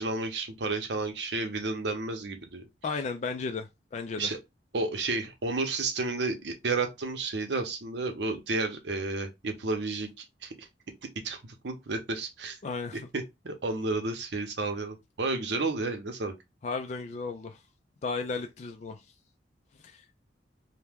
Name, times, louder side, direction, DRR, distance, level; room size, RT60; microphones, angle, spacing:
voice 1, 0.0-2.6 4.2-4.4 4.7-10.7 11.2-12.6 13.1-16.3, right 3 dB, 70° right, 0.8 m, -31 dB
voice 2, 2.8-4.3 12.6-13.0 16.6-17.6 18.0-19.0 19.8-20.0, left 4 dB, 40° left, 0.3 m, -34 dB
2.9 x 2.1 x 3.5 m
head